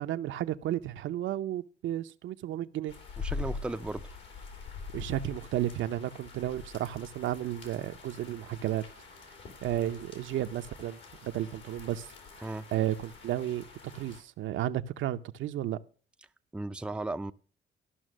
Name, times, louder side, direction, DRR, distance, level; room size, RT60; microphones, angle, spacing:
voice 1, 0.0-2.9 4.9-8.8 9.6-12.1 12.4-13.6 13.9-15.8, right 12 dB, 75° right, 0.6 m, -33 dB
sound 1, 2.9-14.2, left 4 dB, 70° left, 3.1 m, -44 dB
voice 2, 3.2-4.1 12.4-12.7 16.5-17.3, right 2 dB, 5° right, 0.4 m, -35 dB
13.0 x 5.8 x 6.3 m
cardioid pair, 90°, 20 cm